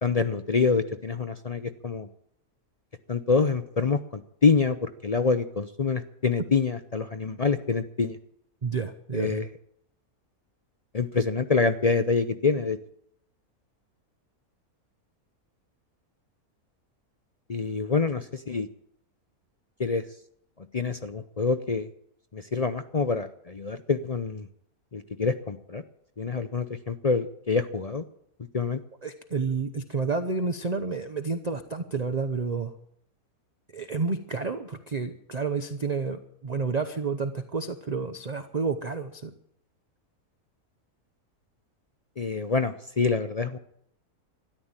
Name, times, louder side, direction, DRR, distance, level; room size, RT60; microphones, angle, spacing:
voice 1, 0.0-2.1 3.1-8.2 9.1-9.5 10.9-12.8 17.5-18.7 19.8-20.0 20.7-21.9 22.3-24.5 24.9-25.8 26.2-28.0 28.5-28.8 42.2-43.6, left 4 dB, 45° left, 9 dB, 0.5 m, -26 dB
voice 2, 8.6-9.4 29.0-32.7 33.7-39.3, right 4 dB, 35° right, 9 dB, 0.7 m, -30 dB
13.5 x 11.0 x 8.9 m, 0.71 s
omnidirectional pair, 1.6 m